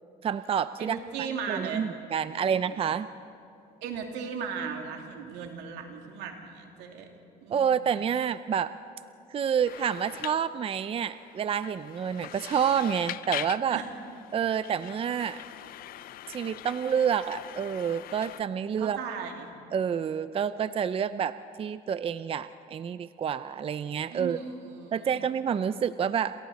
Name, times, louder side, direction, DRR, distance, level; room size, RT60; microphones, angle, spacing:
voice 1, 0.2-1.0 1.5-3.1 7.5-8.7 9.3-13.8 14.3-15.4 16.3-19.0 19.7-24.4 24.9-26.3, right 8 dB, 35° right, 13 dB, 0.5 m, -28 dB
voice 2, 0.8-1.8 2.3-2.8 3.8-7.1 7.4-7.9 13.7-13.9 18.8-19.5 24.1-25.2, right 6 dB, 90° right, 3 dB, 2.6 m, -37 dB
sound 1, 9.7-18.4, left 13 dB, 60° left, 0.5 m, -42 dB
28.5 x 27.0 x 4.2 m, 2.6 s
cardioid pair, 110°, 17 cm